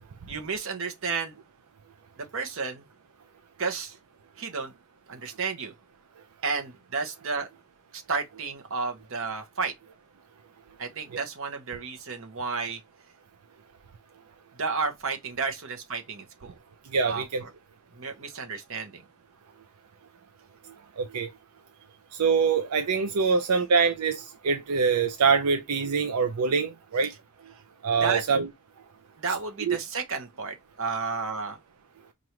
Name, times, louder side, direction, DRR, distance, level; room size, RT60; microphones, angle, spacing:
voice 1, 0.3-1.3 2.3-2.8 3.6-3.9 4.4-4.7 5.1-5.7 6.4-7.5 7.9-9.7 10.8-12.8 14.6-16.5 17.0-17.5 18.0-19.0 28.0-28.2 29.2-31.6, right 4 dB, 65° right, 1.0 m, -32 dB
voice 2, 16.9-17.4 21.0-21.3 22.1-27.1 27.8-28.5 29.7-29.8, right 5 dB, 85° right, 0.5 m, -24 dB
4.8 x 2.6 x 2.9 m
head